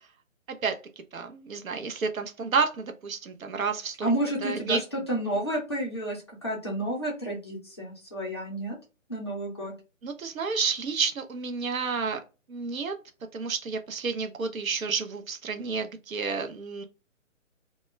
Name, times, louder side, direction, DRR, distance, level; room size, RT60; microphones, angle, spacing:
voice 1, 1.1-4.1 4.4-4.8 10.0-12.2 12.5-12.9 13.3-16.8, right 5 dB, 80° right, 0.6 m, -30 dB
voice 2, 4.0-8.8 9.1-9.7, right 1 dB, 20° left, 0.5 m, -30 dB
2.1 x 2.1 x 3.1 m
figure-of-eight pair, 140°, 40 cm